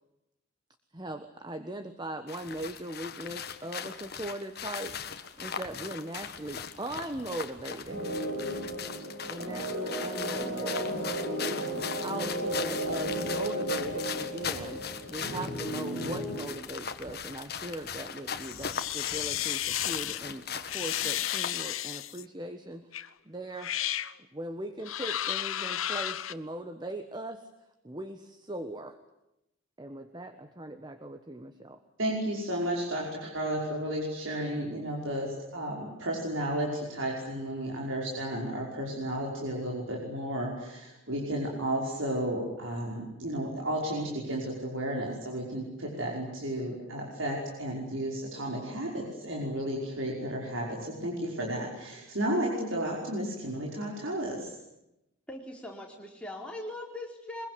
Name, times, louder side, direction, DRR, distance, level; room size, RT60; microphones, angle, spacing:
voice 1, 0.9-8.0 9.3-10.9 11.4-14.8 15.1-22.9 23.2-23.7 24.3-27.4 27.8-29.0 29.8-31.8, right 1 dB, 20° right, 8 dB, 1.2 m, -40 dB
sound 1, 2.3-21.8, left 7 dB, 50° left, 1.5 m, -39 dB
sound 2, 7.9-16.4, right 1 dB, 50° right, 7.5 m, -34 dB
sound 3, 18.4-20.2 20.7-22.2 22.9-23.1 23.5-24.1 24.8-26.3, left 12 dB, 80° left, 0.9 m, -33 dB
voice 2, 32.0-54.5, right 1 dB, 75° right, -2 dB, 5.5 m, -33 dB
voice 3, 55.3-57.5, left 1 dB, 5° left, 0 dB, 4.3 m, -40 dB
23.5 x 22.0 x 9.7 m, 0.87 s
head